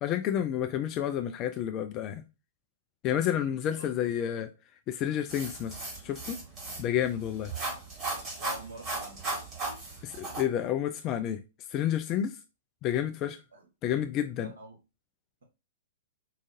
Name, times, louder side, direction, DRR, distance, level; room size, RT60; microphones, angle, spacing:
voice 1, 0.0-2.2 3.0-4.5 4.9-5.8 6.0-6.4 6.8-7.5 10.0-11.4 11.7-12.4 12.8-13.4 13.8-14.5, left 10 dB, 30° left, 0.4 m, -30 dB
voice 2, 3.3-3.9 7.5-7.8 8.4-9.2 13.5-13.7 14.3-14.8, right 1 dB, 70° right, 1.7 m, -47 dB
sound 1, 5.3-10.4, right 3 dB, 30° right, 1.8 m, -37 dB
4.8 x 2.5 x 2.6 m
figure-of-eight pair, 110°, 0 cm